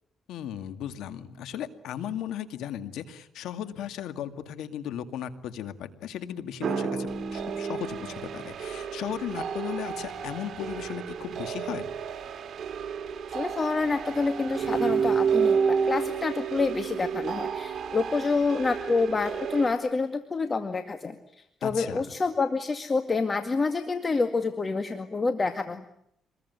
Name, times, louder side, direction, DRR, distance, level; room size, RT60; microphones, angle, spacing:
voice 1, 0.3-11.9 21.6-22.0, left 10 dB, 85° left, 9 dB, 2.3 m, -36 dB
sound 1, 6.6-19.7, right 6 dB, 60° right, 3.1 m, -30 dB
voice 2, 13.3-21.2 21.6-25.8, left 4 dB, 30° left, 8 dB, 2.1 m, -27 dB
26.5 x 21.0 x 9.6 m, 0.75 s
cardioid pair, 90°, 0 cm